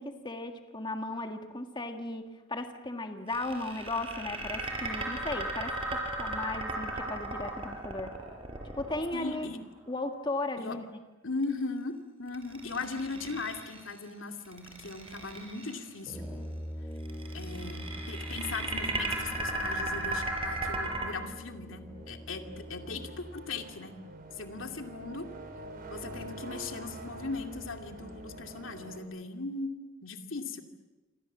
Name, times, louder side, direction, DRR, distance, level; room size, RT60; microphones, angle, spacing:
voice 1, 0.0-8.2 8.8-9.5 9.9-10.8, left 2 dB, 25° left, 5 dB, 1.8 m, -36 dB
sound 1, 3.3-9.5 12.3-13.9 14.4-15.8 17.0-21.1, right 2 dB, 30° right, 5.3 m, -36 dB
voice 2, 9.1-9.6 10.6-10.8 11.2-16.3 17.3-23.9 24.4-25.3 25.9-29.7 30.0-30.6, left 3 dB, 80° left, 5 dB, 2.6 m, -38 dB
Brass instrument, 16.0-23.5, equal, ahead, 3.3 m, -42 dB
sound 2, 20.7-29.0, right 1 dB, 45° right, 4.7 m, -46 dB
28.5 x 25.0 x 7.5 m, 1.2 s
head